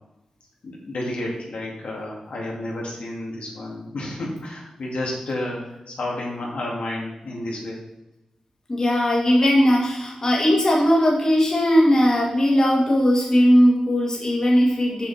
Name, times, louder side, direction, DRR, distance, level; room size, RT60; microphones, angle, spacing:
voice 1, 0.6-7.8, left 1 dB, 80° left, -3 dB, 2.3 m, -31 dB
voice 2, 8.7-15.1, equal, 30° left, -3 dB, 1.8 m, -18 dB
6.9 x 6.5 x 4.2 m, 0.91 s
wide cardioid pair, 125°, 2 cm